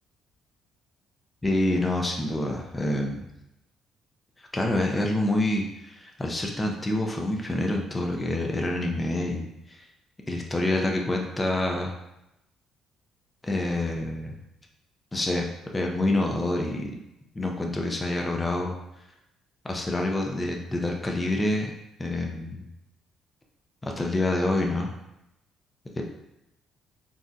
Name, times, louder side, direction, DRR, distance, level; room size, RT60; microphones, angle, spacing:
voice 1, 1.4-3.3 4.5-9.9 10.3-11.9 13.4-14.4 15.1-15.5 15.7-17.0 17.3-18.7 19.6-21.7 22.0-22.7 23.8-24.9 26.0-26.1, left 1 dB, 20° left, 1 dB, 0.5 m, -27 dB
2.6 x 2.1 x 3.6 m, 0.87 s
supercardioid pair, 70°, 0 cm